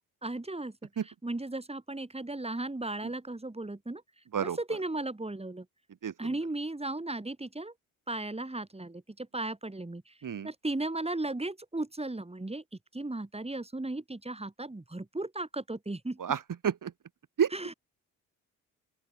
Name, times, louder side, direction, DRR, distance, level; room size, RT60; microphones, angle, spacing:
voice 1, 0.2-0.7 1.2-4.0 4.4-5.7 6.2-7.7 8.1-10.1 10.4-12.6 12.9-16.2 17.5-17.7, right 2 dB, 15° right, 7.6 m, -36 dB
voice 2, 16.2-16.9 17.4-17.7, right 8 dB, 50° right, 5.8 m, -30 dB
open air
hypercardioid pair, 50°, 40 cm